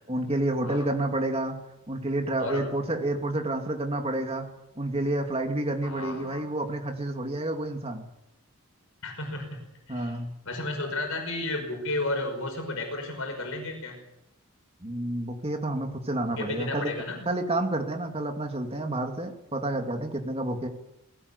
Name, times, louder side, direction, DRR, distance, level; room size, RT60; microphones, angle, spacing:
voice 1, 0.1-1.6 1.9-4.5 4.8-8.1 9.9-10.3 14.8-16.9 17.3-20.7, right 1 dB, 25° right, 3 dB, 2.7 m, -29 dB
voice 2, 5.8-6.5 9.0-10.2 10.5-14.0 16.4-17.3, left 2 dB, 65° left, 4 dB, 5.5 m, -33 dB
20.0 x 17.5 x 8.3 m, 0.87 s
head